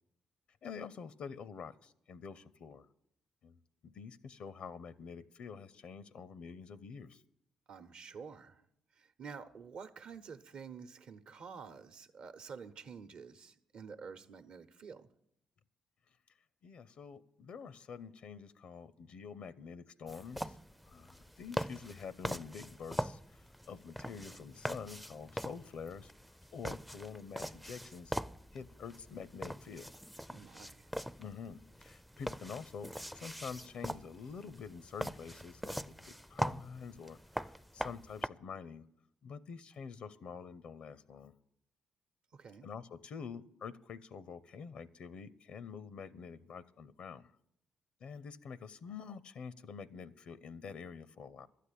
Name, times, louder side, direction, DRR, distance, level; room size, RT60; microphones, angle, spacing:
voice 1, 0.6-2.9 3.4-7.2 16.6-20.6 20.9-26.1 26.5-28.2 28.5-29.9 31.2-38.9 39.2-41.3 42.6-47.3 48.0-51.5, left 6 dB, 65° left, 0.5 m, -47 dB
voice 2, 7.7-8.6 8.9-15.1 30.3-30.9 42.3-42.7, right 6 dB, 65° right, 0.9 m, -49 dB
sound 1, 20.1-38.3, equal, ahead, 0.4 m, -42 dB
12.0 x 8.3 x 8.4 m
supercardioid pair, 55°, 2 cm